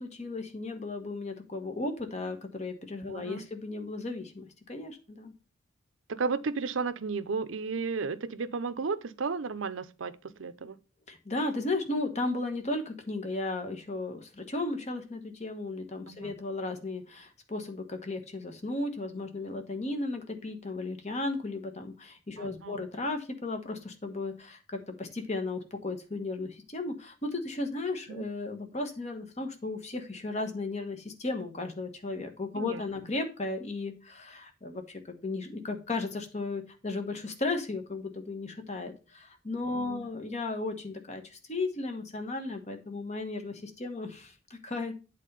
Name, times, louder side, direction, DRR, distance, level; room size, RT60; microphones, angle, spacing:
voice 1, 0.0-5.3 11.1-44.9, left 2 dB, 35° left, 1.2 m, -35 dB
voice 2, 3.1-3.4 6.1-10.1 10.4-10.8 16.1-16.3 22.4-22.8 28.1-28.3 32.6-32.8 39.7-40.1, right 4 dB, 85° right, 0.6 m, -33 dB
8.4 x 4.1 x 5.4 m
head